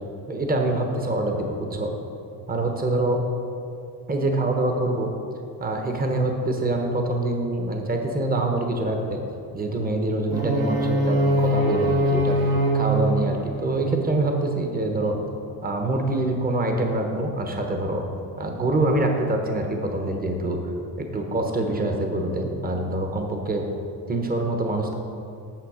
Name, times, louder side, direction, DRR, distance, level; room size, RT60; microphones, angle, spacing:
voice 1, 0.3-1.9 2.5-3.2 4.1-5.1 5.6-9.2 9.5-12.4 12.7-15.1 15.6-18.0 18.4-20.6 21.1-23.6 24.1-25.0, right 2 dB, 20° right, 3 dB, 1.0 m, -25 dB
sound 1, 10.3-14.3, equal, 60° right, 1.4 m, -23 dB
9.1 x 6.3 x 5.0 m, 2.8 s
cardioid pair, 110°, 42 cm